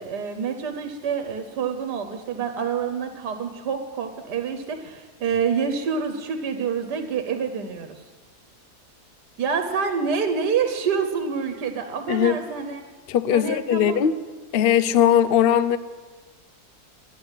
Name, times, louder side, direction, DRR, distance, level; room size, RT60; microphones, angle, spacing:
voice 1, 0.0-8.0 9.4-12.8 13.3-14.0, right 6 dB, 85° right, 7 dB, 1.6 m, -27 dB
voice 2, 13.1-14.1 14.5-15.8, left 10 dB, 65° left, 14 dB, 0.5 m, -19 dB
11.5 x 10.0 x 8.1 m, 1.4 s
omnidirectional pair, 1.7 m